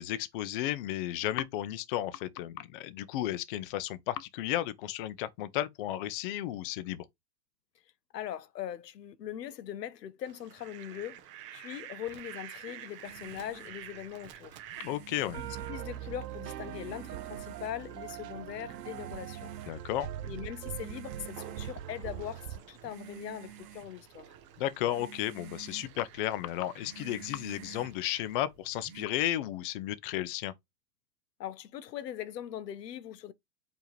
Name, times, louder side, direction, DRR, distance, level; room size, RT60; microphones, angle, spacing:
voice 1, 0.0-7.0 14.8-15.4 19.7-20.1 24.6-30.5, left 13 dB, 35° left, 0.5 m, -33 dB
voice 2, 8.1-11.2 11.5-14.6 15.4-19.5 20.2-24.3 31.4-33.3, left 10 dB, 75° left, 0.7 m, -41 dB
Fowl, 10.3-28.4, right 11 dB, 20° right, 0.4 m, -51 dB
sound 1, 13.0-29.0, right 8 dB, 55° right, 1.2 m, -52 dB
sound 2, 15.3-22.6, right 11 dB, 75° right, 0.6 m, -41 dB
4.6 x 2.9 x 3.1 m
hypercardioid pair, 115°, 49 cm